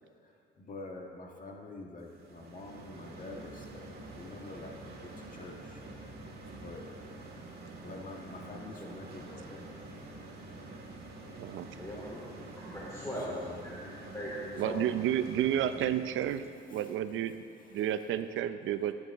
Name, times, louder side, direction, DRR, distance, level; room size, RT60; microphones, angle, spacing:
voice 1, 0.2-5.8 6.6-6.9 7.8-9.5 13.2-13.7 14.6-14.9 16.7-16.9 17.6-17.9, left 3 dB, 45° left, 1 dB, 1.5 m, -46 dB
sound 1, 2.1-16.6, right 2 dB, 50° right, 2.0 m, -47 dB
voice 2, 11.7-13.3 13.6-14.3, equal, 15° left, -8 dB, 3.2 m, -41 dB
voice 3, 14.6-16.4 16.7-17.4 17.7-18.9, right 11 dB, 80° right, 12 dB, 0.6 m, -31 dB
16.0 x 9.5 x 3.6 m, 2.4 s
cardioid pair, 90°, 20 cm